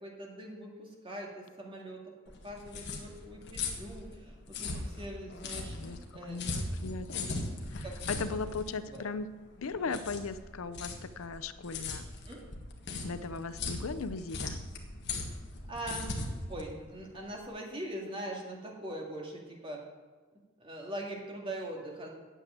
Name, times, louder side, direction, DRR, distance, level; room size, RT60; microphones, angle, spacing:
voice 1, 0.0-2.0 2.4-5.8 6.1-6.5 7.2-7.3 7.8-8.4 8.9-9.1 9.8-10.0 12.3-12.4 15.1-15.3 15.7-16.1 16.5-19.8 20.6-22.1, right 1 dB, 25° right, -1 dB, 2.1 m, -42 dB
sound 1, 2.3-17.5, left 3 dB, 50° left, 1.6 m, -39 dB
voice 2, 5.7-7.3 7.8-9.3 9.6-12.1 13.0-14.6, left 4 dB, 70° left, 13 dB, 0.5 m, -38 dB
9.2 x 7.6 x 9.0 m, 1.4 s
head